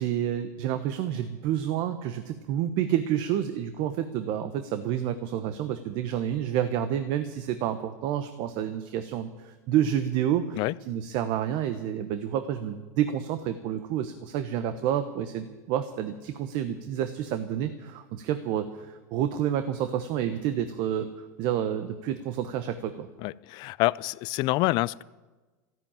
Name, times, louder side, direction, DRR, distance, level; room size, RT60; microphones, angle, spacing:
voice 1, 0.0-23.1, right 10 dB, 55° right, 9 dB, 1.2 m, -29 dB
voice 2, 23.2-25.0, left 20 dB, 50° left, 21 dB, 0.5 m, -27 dB
14.0 x 10.5 x 9.0 m, 1.2 s
hypercardioid pair, 105°, 10 cm